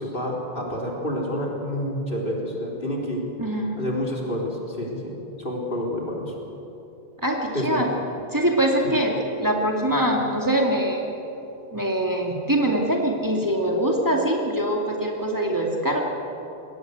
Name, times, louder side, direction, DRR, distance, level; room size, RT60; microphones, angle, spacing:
voice 1, 0.0-3.2 3.8-6.3 7.5-7.9 8.8-8.9, equal, 60° left, -2 dB, 3.9 m, -28 dB
voice 2, 3.4-3.8 7.2-7.9 8.3-11.1 11.7-16.0, right 1 dB, 20° right, -1 dB, 2.5 m, -23 dB
22.5 x 18.5 x 8.1 m, 3.0 s
omnidirectional pair, 1.0 m